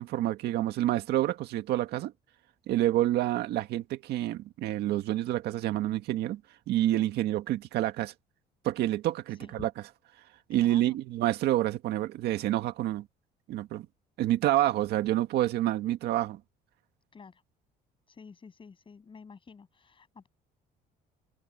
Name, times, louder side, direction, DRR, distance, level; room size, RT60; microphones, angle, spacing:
voice 1, 0.0-2.1 2.7-6.4 6.7-8.1 8.6-9.7 10.5-13.1 13.5-13.9 14.2-16.4, right 14 dB, 75° right, 1.8 m, -28 dB
voice 2, 10.5-11.0 17.1-17.4 18.1-20.3, left 5 dB, 30° left, 8.0 m, -51 dB
cardioid pair, 110°, 17 cm